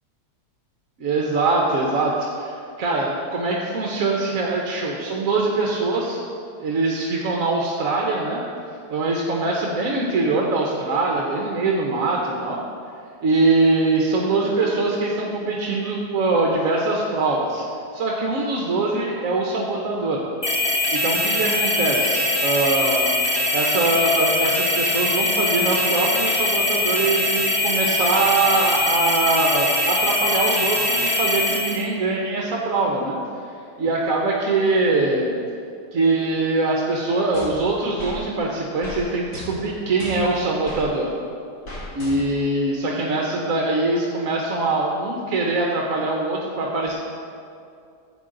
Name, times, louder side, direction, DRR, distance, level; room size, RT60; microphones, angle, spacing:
voice 1, 1.0-6.2 6.6-8.4 8.9-12.6 13.2-17.7 17.9-20.2 20.9-23.1 23.5-33.2 33.4-33.5 33.8-35.4 35.9-41.1 41.9-46.9, right 3 dB, 55° right, -1 dB, 1.2 m, -23 dB
sound 1, 20.4-31.8, left 1 dB, 25° left, 0.6 m, -22 dB
sound 2, 37.3-38.2 38.8-39.0 39.3-40.9 41.7-42.5, left 1 dB, 65° left, 2.7 m, -36 dB
13.0 x 7.9 x 3.8 m, 2.5 s
omnidirectional pair, 1.8 m